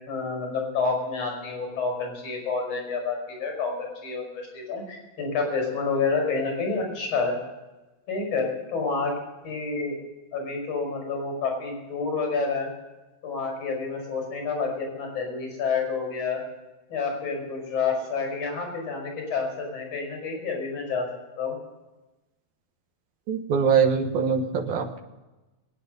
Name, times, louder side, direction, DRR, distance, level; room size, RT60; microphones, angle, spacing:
voice 1, 0.1-7.3 8.1-9.2 9.4-10.0 10.3-12.7 13.2-16.4 16.9-21.1 21.4-21.5, left 4 dB, 55° left, 1 dB, 6.7 m, -29 dB
voice 2, 23.3-25.0, right 6 dB, 80° right, 3 dB, 2.7 m, -23 dB
22.5 x 9.3 x 6.7 m, 1.1 s
omnidirectional pair, 3.4 m